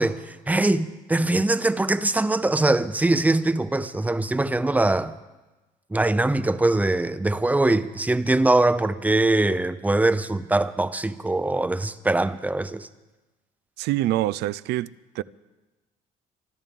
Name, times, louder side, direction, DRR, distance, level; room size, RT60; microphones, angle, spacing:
voice 1, 0.0-5.1 5.9-12.9, right 2 dB, 10° right, 0.6 m, -22 dB
voice 2, 13.8-15.2, right 15 dB, 80° right, 0.4 m, -26 dB
24.5 x 12.5 x 3.6 m
cardioid pair, 110°, 17 cm